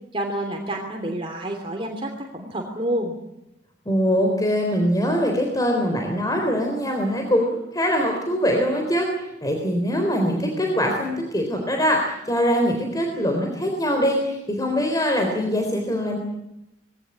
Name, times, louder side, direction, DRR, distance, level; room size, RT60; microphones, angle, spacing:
voice 1, 0.1-3.2, right 1 dB, 30° right, 2 dB, 3.1 m, -28 dB
voice 2, 3.9-9.1 9.4-16.2, equal, 20° left, 2 dB, 3.8 m, -22 dB
21.5 x 17.5 x 9.7 m, 0.89 s
head